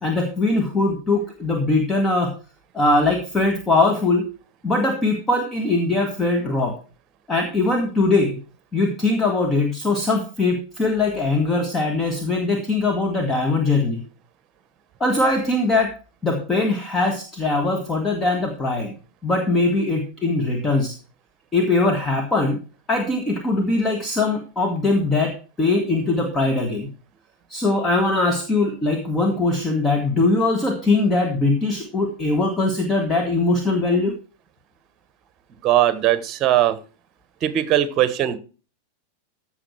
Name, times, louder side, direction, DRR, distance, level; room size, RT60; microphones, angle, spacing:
voice 1, 0.0-2.3 2.7-4.3 4.6-6.8 7.3-8.4 8.7-14.0 15.0-15.9 16.2-19.0 19.2-20.9 21.5-22.6 22.9-26.9 27.5-34.1, left 2 dB, 15° left, 1.8 m, -21 dB
voice 2, 35.6-36.8 37.4-38.4, right 12 dB, 30° right, 1.2 m, -19 dB
14.5 x 6.3 x 4.6 m
figure-of-eight pair, 90°, 0 cm